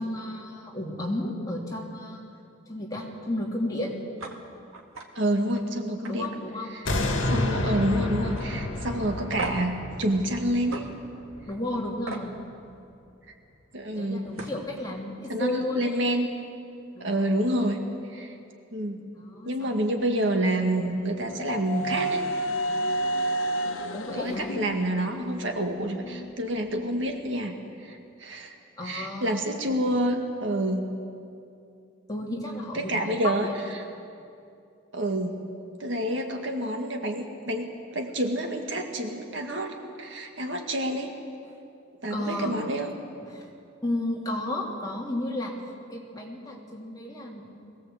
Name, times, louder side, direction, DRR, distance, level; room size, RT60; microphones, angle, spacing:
voice 1, 0.0-2.2 2.7-3.9 6.1-7.3 11.5-12.3 13.9-16.0 16.9-17.4 19.2-19.9 23.9-24.5 28.8-29.4 32.1-33.6 42.1-42.6 43.2-43.5 43.8-45.5 45.9-47.5, left 1 dB, 20° left, -3 dB, 3.0 m, -33 dB
sound 1, 4.2-4.4 4.7-5.1 5.5-5.6 6.0-7.2 7.5-7.9 8.3-8.5 9.4-9.7 10.7-10.8 12.1-12.3 13.9-14.0 14.3-14.6, right 3 dB, 90° right, 2.1 m, -38 dB
voice 2, 5.2-6.3 6.7-7.0 7.3-10.9 13.7-14.3 15.3-16.3 17.0-17.8 18.1-18.3 18.7-19.0 19.5-22.2 24.1-27.6 27.8-28.5 28.8-30.9 32.7-33.5 34.9-35.3 35.8-41.1 42.0-42.9, right 1 dB, 60° right, 3 dB, 1.9 m, -28 dB
sound 2, 6.8-12.0 12.4-12.5, left 1 dB, 65° left, 2.1 m, -30 dB
sound 3, 20.8-26.3, right 1 dB, 85° left, 1.2 m, -31 dB
22.0 x 17.5 x 8.0 m, 2.6 s
head